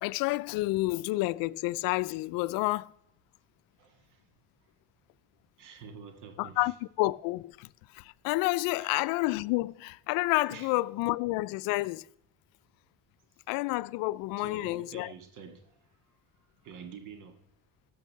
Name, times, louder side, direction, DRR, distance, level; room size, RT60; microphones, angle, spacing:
voice 1, 0.0-2.9 6.4-7.7 7.9-12.1 13.5-15.1, left 20 dB, 85° left, 0.5 m, -29 dB
voice 2, 3.8-4.2 5.6-6.7 8.7-9.0 10.5-10.8 14.4-15.9 16.6-17.4, right 6 dB, 65° right, 1.9 m, -48 dB
14.5 x 5.4 x 6.7 m
cardioid pair, 130°, 33 cm